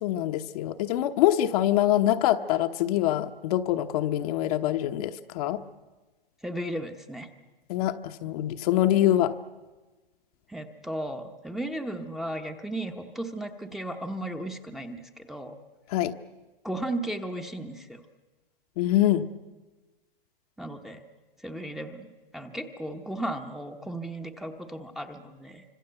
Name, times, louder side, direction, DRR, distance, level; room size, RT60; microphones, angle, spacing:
voice 1, 0.0-5.6 7.7-9.4 15.9-16.1 18.8-19.3, left 13 dB, 40° left, 8 dB, 1.0 m, -24 dB
voice 2, 6.4-7.3 10.5-15.6 16.6-18.0 20.6-21.0 21.4-25.6, right 1 dB, ahead, 3 dB, 1.0 m, -35 dB
25.0 x 25.0 x 8.0 m, 1.2 s
hypercardioid pair, 145°, 29 cm